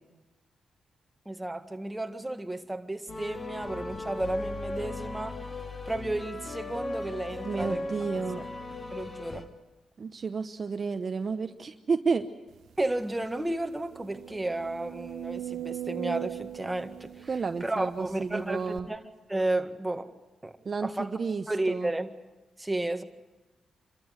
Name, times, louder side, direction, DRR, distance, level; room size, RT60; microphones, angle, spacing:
voice 1, 1.2-5.4 5.8-7.8 8.9-9.5 12.8-17.3 17.6-19.0 19.3-20.1 20.4-20.5 20.8-21.1 21.5-22.1 22.6-23.0, right 1 dB, 10° right, 6 dB, 1.8 m, -32 dB
sound 1, 3.1-9.4, left 2 dB, 40° left, 2.5 m, -37 dB
voice 2, 7.4-8.4 10.0-12.3 17.3-18.9 20.6-21.9, right 5 dB, 45° right, 8 dB, 0.9 m, -31 dB
sound 2, 12.8-12.9 13.2-13.3 13.9-18.1 18.8-18.9, right 12 dB, 80° right, 0.7 m, -39 dB
26.5 x 13.5 x 9.5 m, 1.1 s
cardioid pair, 70°, 0 cm